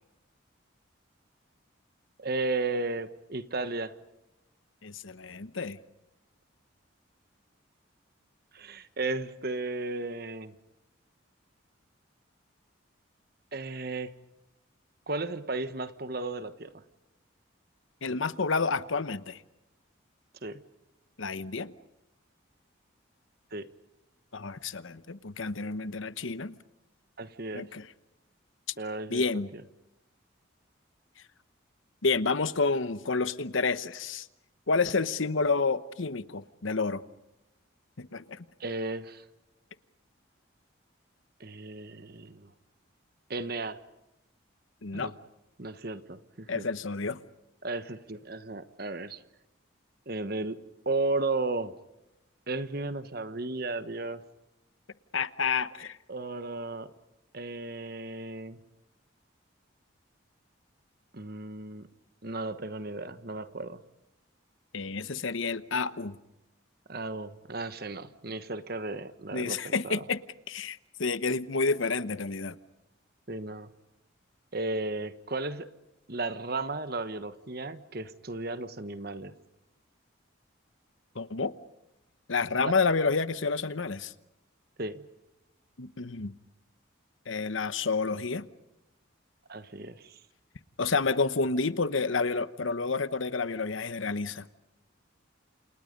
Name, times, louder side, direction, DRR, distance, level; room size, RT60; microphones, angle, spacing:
voice 1, 2.2-3.9 8.5-10.5 13.5-14.1 15.1-16.7 20.4-20.6 23.5-23.7 27.2-27.7 28.8-29.2 29.5-29.6 38.6-39.2 41.4-42.5 43.3-43.8 44.9-45.1 45.6-46.7 47.6-49.2 50.1-50.6 50.8-51.7 52.5-54.2 56.1-56.9 57.3-58.6 61.1-61.9 62.2-63.8 66.9-70.0 73.3-73.7 74.5-75.7 76.1-79.3 82.6-82.7 84.8-85.0 89.5-90.2, right 2 dB, 50° right, 1.3 m, -34 dB
voice 2, 4.8-5.8 18.0-19.4 21.2-21.7 24.3-26.6 27.5-27.8 29.1-29.5 32.0-34.3 34.7-37.0 38.0-38.4 44.8-45.1 46.5-47.2 55.1-56.0 64.7-66.2 69.3-70.2 70.5-72.6 81.1-81.5 82.3-84.1 85.8-86.3 87.3-88.5 90.8-94.4, left 4 dB, 75° left, 1.0 m, -29 dB
29.0 x 28.5 x 5.3 m
head